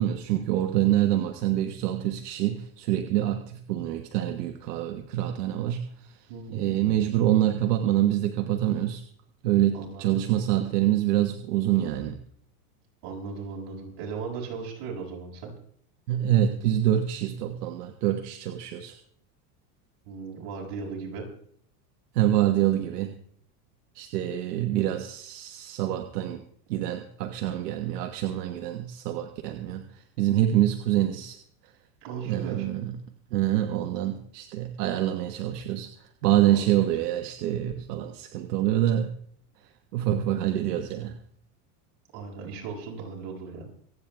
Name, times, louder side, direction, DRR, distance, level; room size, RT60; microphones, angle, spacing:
voice 1, 0.0-5.9 6.5-9.0 9.4-12.2 16.1-18.9 22.1-23.1 23.9-26.4 26.7-29.8 30.2-31.4 32.3-33.0 33.3-35.9 36.2-39.1 39.9-41.2, right 12 dB, 85° right, 6 dB, 1.5 m, -26 dB
voice 2, 6.3-7.1 9.7-10.2 13.0-15.5 20.0-21.3 32.0-32.7 36.5-36.7 42.1-43.6, right 5 dB, 60° right, -2 dB, 6.8 m, -37 dB
26.5 x 9.3 x 3.5 m, 0.62 s
supercardioid pair, 130°, 46 cm